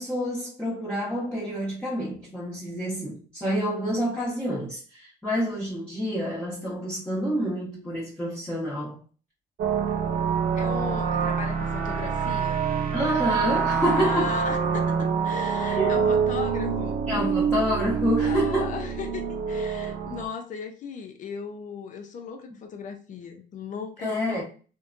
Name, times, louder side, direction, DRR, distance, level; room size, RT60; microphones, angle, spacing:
voice 1, 0.0-9.0 12.9-14.3 15.8-16.0 17.1-18.8 24.0-24.4, equal, 5° left, 1.0 m, -28 dB
sound 1, 9.6-20.3, right 6 dB, 60° right, 0.4 m, -26 dB
voice 2, 10.5-12.6 13.9-14.9 15.2-17.1 18.2-24.4, left 6 dB, 50° left, 0.6 m, -37 dB
2.7 x 2.2 x 2.5 m
cardioid pair, 110°, 17 cm